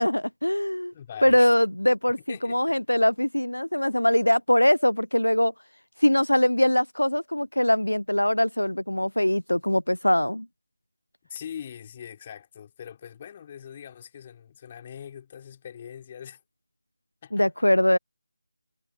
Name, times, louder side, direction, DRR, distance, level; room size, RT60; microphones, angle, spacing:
voice 1, 0.0-0.9 1.2-2.2 2.4-5.5 6.0-10.5 17.3-18.0, left 1 dB, 90° left, 0.5 m, -22 dB
voice 2, 0.9-1.6 2.3-2.8 11.3-16.4 17.2-17.5, left 8 dB, 25° left, 5.1 m, -42 dB
figure-of-eight pair, 160°, 0 cm